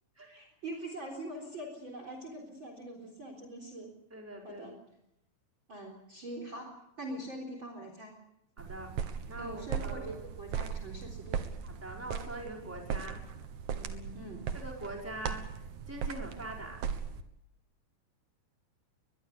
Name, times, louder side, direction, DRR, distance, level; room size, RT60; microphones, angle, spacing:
voice 1, 0.2-3.9 4.4-4.8 5.7-6.7 7.0-8.2 9.3-11.5 14.1-14.5, right 1 dB, 30° right, 4 dB, 4.3 m, -43 dB
voice 2, 4.1-4.8 8.6-8.9 9.3-10.1 11.6-13.2 13.7-14.2 14.5-15.4 15.9-16.8, right 1 dB, 5° right, 0 dB, 5.0 m, -43 dB
sound 1, 8.6-17.2, right 7 dB, 60° right, 2.6 m, -38 dB
23.0 x 21.5 x 6.8 m, 0.79 s
omnidirectional pair, 4.3 m